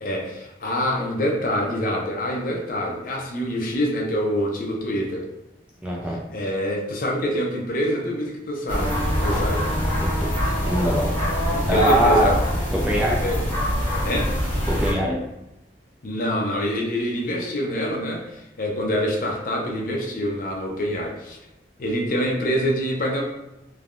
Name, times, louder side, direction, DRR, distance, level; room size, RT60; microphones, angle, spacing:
voice 1, 0.0-5.3 6.3-9.7 11.5-12.4 13.2-13.4 14.0-14.3 16.0-21.4 21.8-23.2, equal, 50° left, 0 dB, 0.5 m, -25 dB
voice 2, 5.8-6.2 10.6-11.1 11.7-12.3 12.8-13.2 14.7-15.2, equal, 5° right, -3 dB, 0.3 m, -21 dB
sound 1, 8.7-14.9, equal, 10° left, 0.9 m, -24 dB
3.3 x 2.1 x 2.4 m, 0.92 s
head